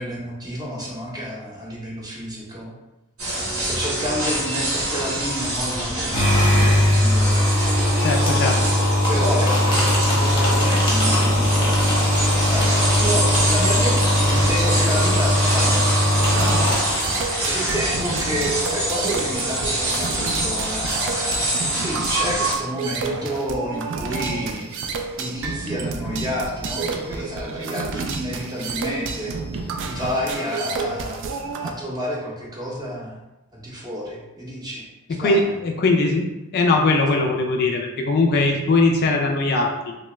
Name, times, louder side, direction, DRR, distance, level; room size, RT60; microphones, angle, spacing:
voice 1, 0.0-2.7 3.6-8.0 9.1-11.8 12.4-14.0 14.2-16.6 17.4-29.4 29.8-33.2 33.5-35.6, equal, 20° right, -4 dB, 0.7 m, -30 dB
sound 1, 3.2-22.5, right 1 dB, 85° right, 1.3 m, -26 dB
sound 2, 6.1-17.5, left 1 dB, 25° left, 0.7 m, -19 dB
voice 2, 8.0-8.6 35.2-36.3 36.5-39.9, left 3 dB, 45° left, 2 dB, 0.3 m, -20 dB
sound 3, 16.2-31.7, right 4 dB, 60° right, 0.3 m, -30 dB
2.9 x 2.3 x 3.0 m, 0.98 s
head